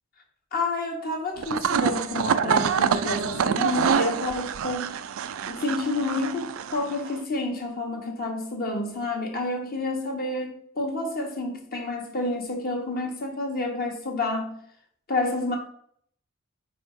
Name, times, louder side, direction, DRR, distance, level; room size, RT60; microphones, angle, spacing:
voice 1, 0.5-5.0 5.5-14.5 15.1-15.6, left 2 dB, 45° left, 1.4 m, -29 dB
sound 1, 1.4-7.2, right 7 dB, 70° right, 0.4 m, -26 dB
4.8 x 4.8 x 4.5 m
head